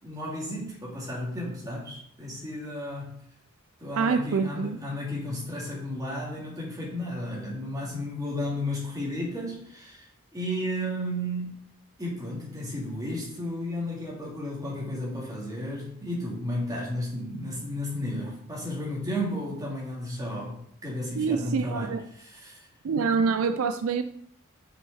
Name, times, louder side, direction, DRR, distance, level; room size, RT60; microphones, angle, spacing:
voice 1, 0.0-3.1 3.8-11.6 12.0-22.6, left 1 dB, 15° right, -5 dB, 2.4 m, -33 dB
voice 2, 4.0-4.8 21.2-22.0 22.8-24.0, right 5 dB, 75° right, 10 dB, 0.4 m, -26 dB
5.8 x 5.6 x 4.3 m, 0.67 s
head